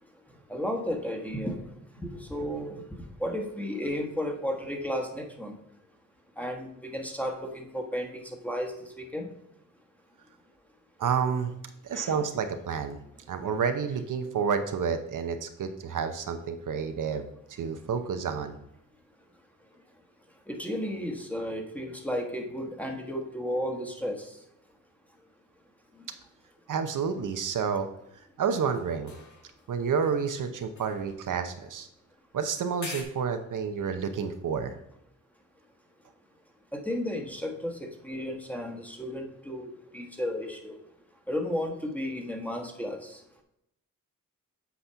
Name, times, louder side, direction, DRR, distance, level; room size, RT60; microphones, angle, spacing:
voice 1, 0.5-1.6 2.0-5.5 6.4-9.3 11.9-12.1 20.5-24.3 36.7-40.7 41.3-43.2, equal, 5° left, 3 dB, 1.3 m, -33 dB
voice 2, 11.0-11.5 11.8-13.0 13.3-18.6 26.7-27.9 28.4-29.1 29.7-31.9 32.3-34.8, right 6 dB, 65° right, 8 dB, 0.7 m, -30 dB
sound 1, 28.6-29.7 30.0-32.1 32.8-33.0, left 3 dB, 55° left, 2.0 m, -46 dB
8.1 x 4.2 x 5.7 m, 0.80 s
cardioid pair, 90°, 34 cm